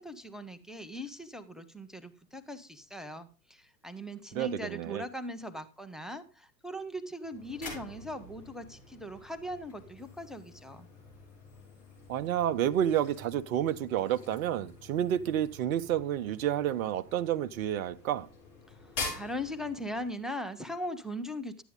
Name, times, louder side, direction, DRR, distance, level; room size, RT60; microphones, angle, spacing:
voice 1, 0.0-10.9 19.1-21.6, equal, ahead, 0.8 m, -39 dB
voice 2, 4.3-5.0 12.1-18.3, right 11 dB, 55° right, 0.9 m, -30 dB
sound 1, 7.2-20.2, left 3 dB, 45° left, 6.9 m, -46 dB
12.0 x 9.2 x 3.7 m
figure-of-eight pair, 90°, 48 cm